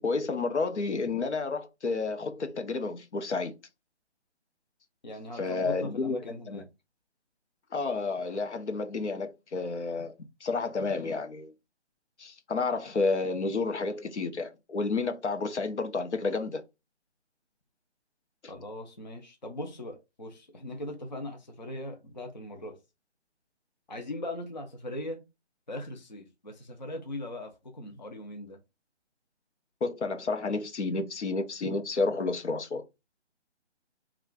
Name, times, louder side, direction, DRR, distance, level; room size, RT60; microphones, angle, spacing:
voice 1, 0.0-3.5 5.4-6.2 6.5-6.6 7.7-10.1 10.4-11.5 12.2-16.6 29.8-32.8, left 3 dB, 75° left, 0.8 m, -30 dB
voice 2, 5.0-6.7 18.5-22.8 23.9-25.2 25.7-28.6, left 1 dB, 40° left, 0.5 m, -39 dB
3.1 x 2.4 x 3.5 m
hypercardioid pair, 180°, 35 cm